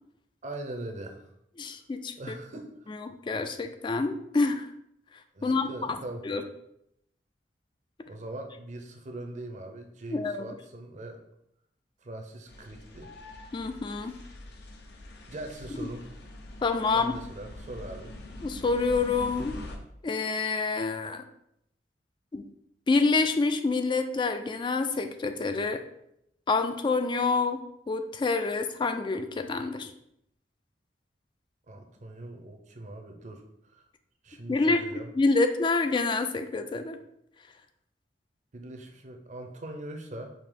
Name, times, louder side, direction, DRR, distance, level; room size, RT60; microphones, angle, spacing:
voice 1, 0.4-1.3 2.2-3.0 5.3-6.3 8.1-11.2 12.0-13.1 15.3-16.1 16.9-18.1 31.7-33.9 34.2-35.1 38.5-40.3, right 1 dB, 40° right, 4 dB, 0.6 m, -41 dB
voice 2, 1.6-2.4 2.9-4.7 5.4-6.4 10.1-10.5 13.5-14.2 15.8-15.9 16.6-17.2 18.4-19.6 20.0-21.2 22.3-22.5 22.9-25.8 26.5-29.9 34.5-34.8 35.1-37.0, left 3 dB, 25° left, 8 dB, 0.3 m, -27 dB
sound 1, 12.5-19.8, left 1 dB, 65° left, 0.6 m, -44 dB
5.0 x 2.8 x 3.7 m, 0.77 s
head